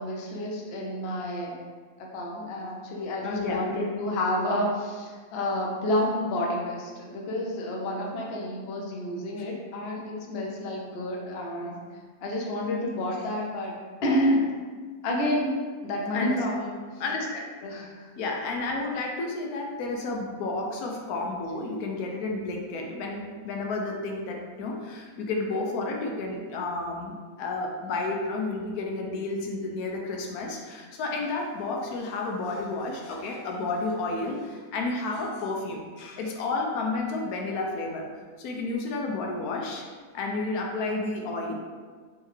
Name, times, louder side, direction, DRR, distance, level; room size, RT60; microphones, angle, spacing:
voice 1, 0.0-1.6 2.0-11.8 12.2-13.8 14.0-14.5 15.0-16.8 17.6-18.1, left 1 dB, 55° left, -1 dB, 0.8 m, -29 dB
voice 2, 3.2-3.8 16.1-16.4 17.0-17.4 18.2-38.1 38.4-39.8 40.1-41.5, left 3 dB, 85° left, 0 dB, 1.1 m, -31 dB
3.6 x 3.1 x 3.2 m, 1.5 s
omnidirectional pair, 1.5 m